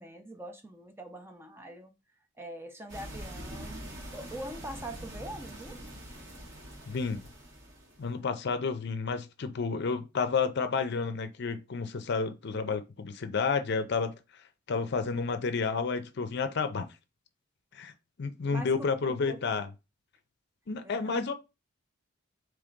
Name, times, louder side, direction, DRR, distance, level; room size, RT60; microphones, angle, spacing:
voice 1, 0.0-1.9 2.4-5.8 18.5-19.6 20.8-21.2, right 1 dB, 10° right, 0.6 m, -43 dB
sound 1, 2.9-8.2, equal, 60° right, 1.8 m, -44 dB
voice 2, 6.9-7.2 8.0-14.1 14.7-16.9 17.7-17.9 18.2-19.7 20.7-21.3, left 5 dB, 55° left, 0.5 m, -30 dB
3.6 x 3.2 x 3.9 m
head